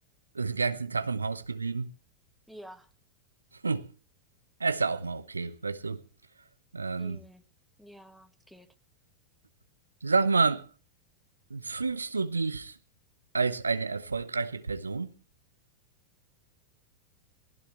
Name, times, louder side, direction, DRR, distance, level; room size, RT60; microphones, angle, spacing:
voice 1, 0.3-1.9 3.6-3.9 4.6-6.0 6.7-7.2 10.0-10.7 11.5-12.8 13.3-15.1, right 4 dB, 80° right, 0.8 m, -29 dB
voice 2, 2.5-2.9 7.0-7.4 7.8-8.7, equal, ahead, 1.7 m, -50 dB
19.5 x 16.0 x 3.2 m
figure-of-eight pair, 90°, 0 cm